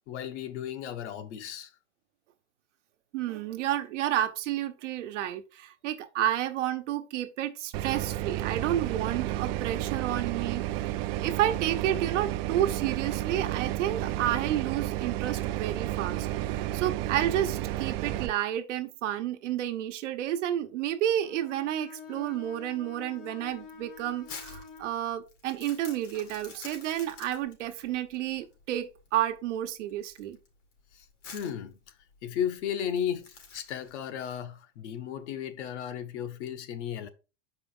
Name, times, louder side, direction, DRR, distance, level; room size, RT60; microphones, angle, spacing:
voice 1, 0.1-1.7 30.9-31.0 31.3-31.8 32.2-37.1, left 9 dB, 70° left, 1.1 m, -34 dB
voice 2, 3.1-10.6 11.2-30.4, right 12 dB, 75° right, 1.1 m, -31 dB
sound 1, 7.7-18.3, right 14 dB, 55° right, 0.5 m, -32 dB
Bowed string instrument, 21.2-25.0, left 6 dB, 25° left, 0.6 m, -47 dB
Crumpling crinkling, 23.5-34.0, left 5 dB, 90° left, 2.4 m, -49 dB
6.1 x 4.9 x 3.8 m
supercardioid pair, 145°, 36 cm